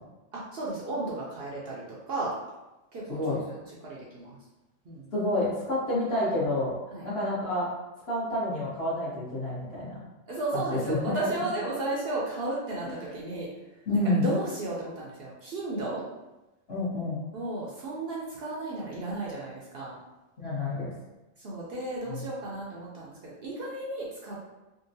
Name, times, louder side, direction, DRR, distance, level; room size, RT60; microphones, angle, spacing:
voice 1, 0.3-2.3 2.9-4.4 4.9-5.1 6.9-7.0 10.3-13.5 13.9-16.0 17.3-20.0 21.4-24.5, right 2 dB, 55° right, -5 dB, 0.8 m, -34 dB
voice 2, 3.1-3.4 5.1-6.8 7.0-7.7 8.1-10.0 10.5-11.0 11.4-11.5 13.9-14.2 16.7-17.3 20.4-20.9 22.1-22.2, left 1 dB, 55° left, -8 dB, 1.3 m, -29 dB
3.7 x 2.1 x 2.6 m, 1.0 s
omnidirectional pair, 1.3 m